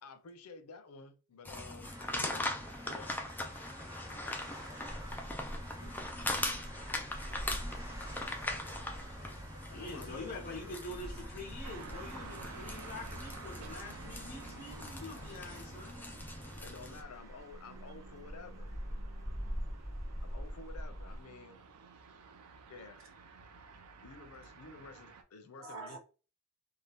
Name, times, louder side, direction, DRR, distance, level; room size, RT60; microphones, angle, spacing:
voice 1, 0.0-1.9 2.9-3.2 7.3-7.4 7.9-8.0 8.8-10.8 15.1-15.2 16.6-18.7 20.2-21.6 22.7-23.0 24.0-26.0, left 4 dB, 85° left, 0.6 m, -52 dB
sound 1, 1.5-17.0, left 2 dB, 10° left, 0.3 m, -41 dB
sound 2, 1.8-21.2, equal, 15° right, 0.7 m, -46 dB
voice 2, 2.2-2.5 5.8-6.5 25.6-26.0, right 2 dB, 65° right, 1.2 m, -48 dB
voice 3, 9.7-16.0, left 2 dB, 40° left, 0.7 m, -45 dB
sound 3, 11.6-25.2, right 5 dB, 85° right, 0.5 m, -53 dB
2.8 x 2.3 x 3.3 m
head